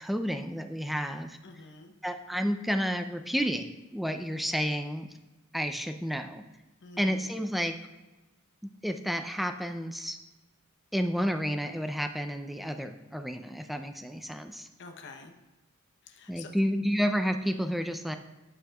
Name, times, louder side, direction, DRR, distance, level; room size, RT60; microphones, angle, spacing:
voice 1, 0.0-1.4 2.0-3.7 3.9-5.1 5.5-6.4 7.0-7.8 8.8-10.2 10.9-14.7 16.3-18.2, equal, ahead, 7 dB, 0.4 m, -30 dB
voice 2, 1.4-1.9 6.8-7.3 14.8-15.3 16.0-16.5, left 4 dB, 55° left, 4 dB, 0.8 m, -47 dB
12.0 x 6.4 x 2.3 m, 1.1 s
head